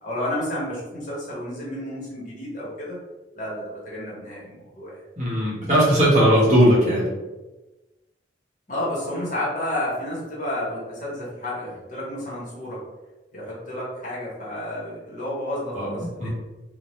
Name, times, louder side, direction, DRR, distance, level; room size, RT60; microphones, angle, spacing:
voice 1, 0.0-3.0 3.3-5.0 8.7-12.8 13.3-16.3, left 1 dB, 45° left, -6 dB, 0.8 m, -31 dB
voice 2, 5.2-7.1 15.8-16.3, equal, 40° right, -7 dB, 0.8 m, -18 dB
2.1 x 2.1 x 2.9 m, 1.1 s
head